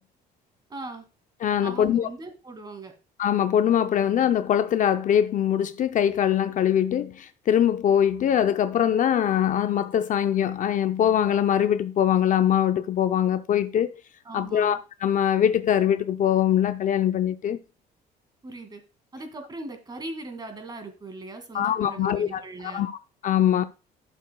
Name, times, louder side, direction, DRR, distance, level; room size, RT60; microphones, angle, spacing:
voice 1, 0.7-1.0 1.6-2.9 14.2-14.8 18.4-18.8 19.1-22.9, right 2 dB, 25° right, 2.1 m, -39 dB
voice 2, 1.4-2.1 3.2-14.0 14.3-17.6 21.5-22.4 22.7-23.0 23.2-23.6, left 9 dB, 50° left, 0.6 m, -22 dB
11.5 x 6.8 x 2.2 m
cardioid pair, 110°, 17 cm